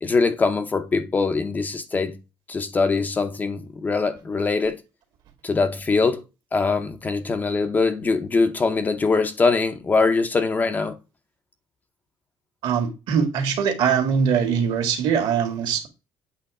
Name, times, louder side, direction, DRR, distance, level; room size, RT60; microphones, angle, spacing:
voice 1, 0.0-2.2 2.5-4.8 5.4-6.2 6.5-10.9, left 4 dB, 20° left, 0.7 m, -22 dB
voice 2, 12.6-15.9, right 7 dB, 60° right, 1.9 m, -22 dB
8.3 x 3.1 x 4.8 m
cardioid pair, 165°, 9 cm